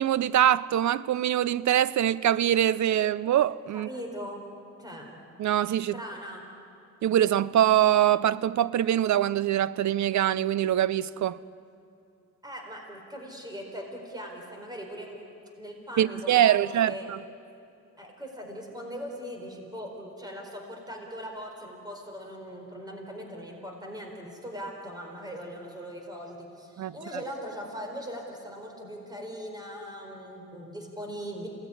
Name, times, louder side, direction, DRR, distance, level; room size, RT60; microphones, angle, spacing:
voice 1, 0.0-3.9 5.4-6.0 7.0-11.4 16.0-17.2 26.8-26.9, right 11 dB, 65° right, 0.7 m, -23 dB
voice 2, 3.7-4.4 4.8-5.1 5.9-6.5 12.4-15.2 15.6-17.1 18.0-31.5, equal, 10° right, 4.6 m, -40 dB
28.5 x 18.5 x 10.0 m
cardioid pair, 115°, 31 cm